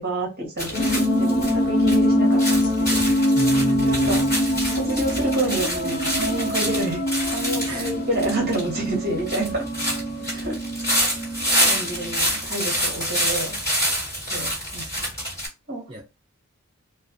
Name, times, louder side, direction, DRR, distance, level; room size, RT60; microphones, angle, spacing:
voice 1, 0.0-3.0 3.8-4.2 4.7-9.7 10.3-10.6 11.6-13.6 14.3-15.1 15.7-16.0, right 2 dB, 45° right, 1.0 m, -29 dB
sound 1, 0.6-15.5, equal, 15° left, 1.5 m, -27 dB
sound 2, 0.7-12.2, left 1 dB, 55° left, 0.7 m, -24 dB
voice 2, 3.0-4.4 7.7-7.9 8.2-8.3 10.2-10.3 15.9-16.0, right 2 dB, 20° right, 0.3 m, -31 dB
2.3 x 2.2 x 2.5 m
head